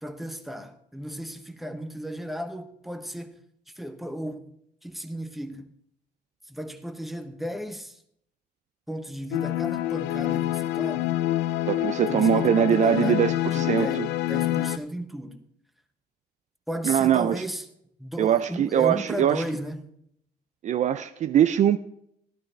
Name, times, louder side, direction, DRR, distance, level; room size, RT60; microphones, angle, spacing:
voice 1, 0.0-3.4 3.8-4.5 4.8-5.7 6.5-8.0 8.9-11.2 12.1-15.4 16.7-17.6 18.0-19.8, equal, ahead, 0.9 m, -35 dB
sound 1, 9.3-14.8, left 14 dB, 85° left, 0.4 m, -26 dB
voice 2, 11.7-14.1 16.8-17.4 18.2-19.4 20.6-21.8, right 9 dB, 45° right, 0.4 m, -22 dB
13.5 x 11.5 x 3.2 m
cardioid pair, 110°, 17 cm